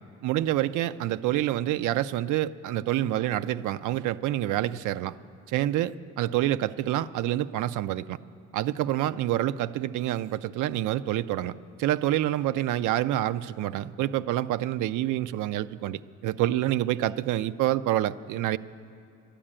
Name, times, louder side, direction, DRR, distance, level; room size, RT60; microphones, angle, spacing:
voice 1, 0.2-5.2 5.5-8.2 8.5-18.6, right 13 dB, 80° right, 13 dB, 0.5 m, -27 dB
12.0 x 10.0 x 8.8 m, 2.7 s
cardioid pair, 90°, 30 cm